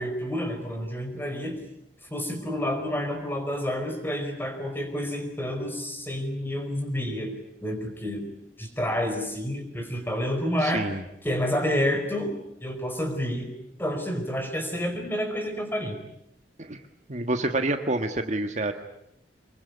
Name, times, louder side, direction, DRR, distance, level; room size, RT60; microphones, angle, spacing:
voice 1, 0.0-1.6 2.1-7.3 7.6-8.2 8.6-10.9 11.2-12.3 12.6-13.5 13.8-16.0, equal, 10° left, 6 dB, 4.8 m, -29 dB
voice 2, 10.6-11.0 16.6-16.8 17.1-18.7, right 2 dB, 40° right, 6 dB, 1.5 m, -27 dB
25.0 x 22.5 x 9.7 m, 0.80 s
head